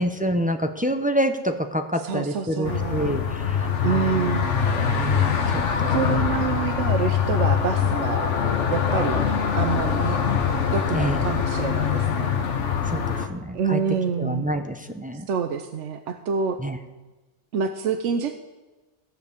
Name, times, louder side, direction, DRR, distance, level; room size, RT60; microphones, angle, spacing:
voice 1, 0.0-6.0 10.9-11.2 12.9-13.8 14.2-15.3 16.6-16.8, equal, 10° right, 6 dB, 0.6 m, -27 dB
voice 2, 2.0-3.2 3.8-4.5 5.9-8.3 8.7-9.2 9.5-10.2 10.7-12.3 13.5-14.5 15.1-16.6 17.5-18.3, right 6 dB, 80° right, 7 dB, 1.1 m, -27 dB
sound 1, 2.6-13.3, left 7 dB, 85° left, 1.4 m, -23 dB
16.0 x 5.4 x 8.0 m, 1.2 s
omnidirectional pair, 1.2 m